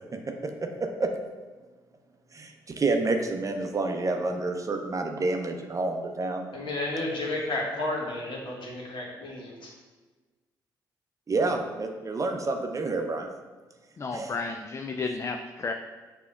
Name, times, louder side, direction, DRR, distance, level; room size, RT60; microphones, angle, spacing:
voice 1, 2.3-6.5 11.3-13.3 14.1-14.4, right 3 dB, 35° right, 4 dB, 0.6 m, -28 dB
voice 2, 6.5-9.7, left 2 dB, 55° left, -3 dB, 1.2 m, -32 dB
voice 3, 14.0-15.7, left 4 dB, 30° left, 5 dB, 0.3 m, -32 dB
6.7 x 2.8 x 2.4 m, 1.3 s
hypercardioid pair, 45°, 10 cm